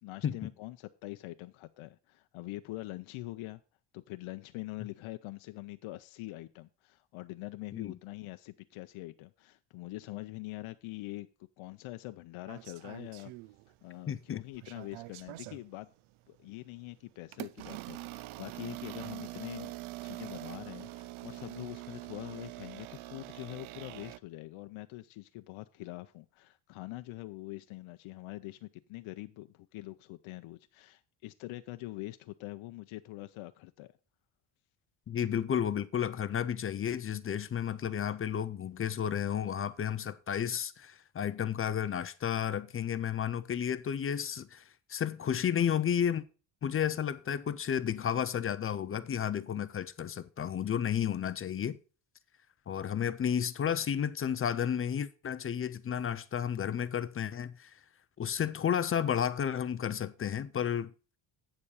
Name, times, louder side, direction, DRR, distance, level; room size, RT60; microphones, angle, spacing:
voice 1, 0.0-3.6 3.9-11.3 11.6-13.3 13.8-15.9 16.3-19.7 20.0-33.9, left 19 dB, 80° left, 0.6 m, -44 dB
sound 1, 12.5-13.9 14.3-15.6 16.3-16.5 17.3-24.2, right 18 dB, 75° right, 0.6 m, -44 dB
voice 2, 14.1-14.4 35.1-44.6 44.9-46.2 46.6-51.8 52.7-57.7 58.2-60.9, left 8 dB, 30° left, 0.4 m, -32 dB
8.7 x 7.1 x 4.8 m
cardioid pair, 135°, 48 cm